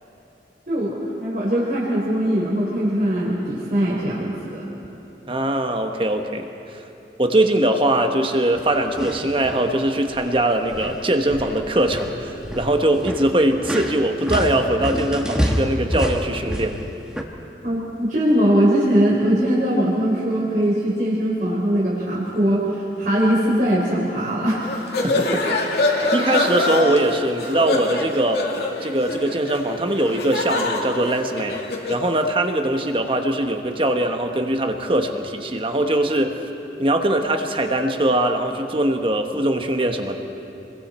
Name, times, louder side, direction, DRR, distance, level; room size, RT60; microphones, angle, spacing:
voice 1, 0.7-4.6 17.6-24.7, equal, 45° right, -7 dB, 4.0 m, -21 dB
voice 2, 5.3-6.8 7.2-16.8 25.0-25.5 26.1-28.4 28.8-31.6 31.9-36.4 36.8-40.2, right 1 dB, 30° right, 5 dB, 1.2 m, -21 dB
sound 1, 8.5-9.7 10.0-10.4 10.7-17.2, equal, 5° right, 1.3 m, -28 dB
sound 2, 24.6-32.1, left 2 dB, 60° left, 2.3 m, -25 dB
28.5 x 22.0 x 4.4 m, 3.0 s
head